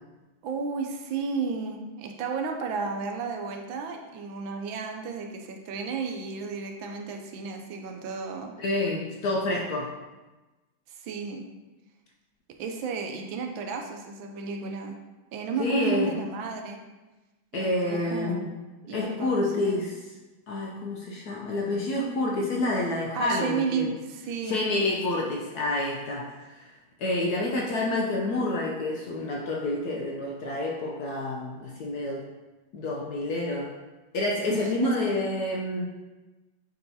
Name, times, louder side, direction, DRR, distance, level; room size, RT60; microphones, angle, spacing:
voice 1, 0.4-8.5 10.9-11.5 12.6-15.0 15.3-16.8 17.5-18.5 18.9-19.8 23.1-24.6 34.5-34.9, right 5 dB, 80° right, 3 dB, 1.4 m, -33 dB
voice 2, 8.6-9.9 15.6-16.1 17.5-18.5 18.9-19.9 20.5-23.9 24.4-26.6 27.0-32.3 32.7-33.7 34.1-35.9, left 2 dB, 65° left, -2 dB, 1.0 m, -28 dB
8.8 x 3.9 x 2.7 m, 1.1 s
omnidirectional pair, 2.2 m